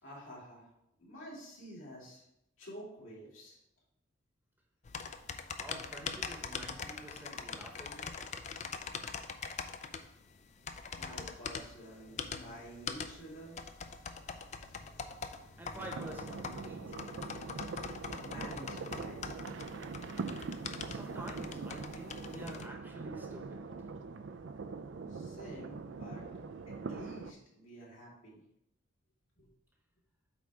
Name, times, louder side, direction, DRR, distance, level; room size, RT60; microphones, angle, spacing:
voice 1, 0.0-0.7 1.0-2.2 2.6-3.6 11.0-13.6 18.2-19.4 25.1-26.3 26.7-28.4 29.4-29.5, equal, 75° left, -5 dB, 2.9 m, -49 dB
sound 1, 4.8-22.7, left 5 dB, 35° left, 0.4 m, -43 dB
voice 2, 5.6-8.2 15.6-17.2 20.9-23.9, right 1 dB, 10° right, 0 dB, 0.9 m, -48 dB
sound 2, 11.8-19.4, equal, 50° left, 1.6 m, -61 dB
sound 3, 15.8-27.3, right 4 dB, 65° right, 0.4 m, -43 dB
8.3 x 3.6 x 4.9 m, 0.79 s
head